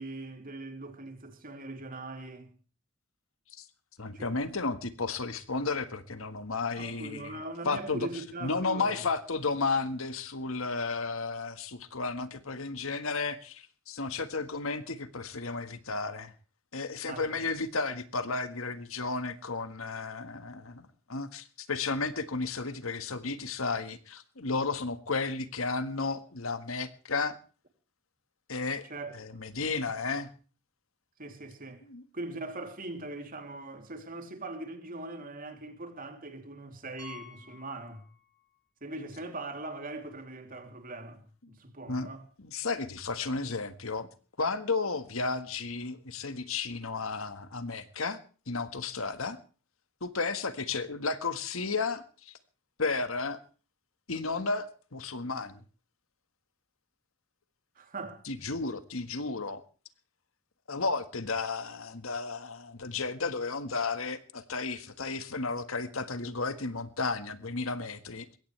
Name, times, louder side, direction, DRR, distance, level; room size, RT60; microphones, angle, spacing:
voice 1, 0.0-2.5 4.1-4.4 6.8-9.1 17.1-17.4 28.8-29.1 31.2-31.8 32.1-38.1 38.8-41.2 41.5-42.2 57.7-58.2, right 2 dB, 40° right, 3.1 m, -41 dB
voice 2, 4.0-7.4 7.6-8.1 8.4-16.3 16.7-27.4 28.5-28.9 29.1-30.3 31.9-32.0 41.9-42.1 42.4-44.1 44.4-48.2 48.5-49.4 50.0-52.3 52.8-53.4 54.1-55.6 58.2-59.6 60.7-68.3, left 4 dB, 75° left, 1.6 m, -33 dB
Piano, 37.0-38.6 38.9-39.0 39.6-39.7 39.9-40.0 42.1-42.2, left 8 dB, 20° left, 5.2 m, -52 dB
22.0 x 17.5 x 3.3 m
head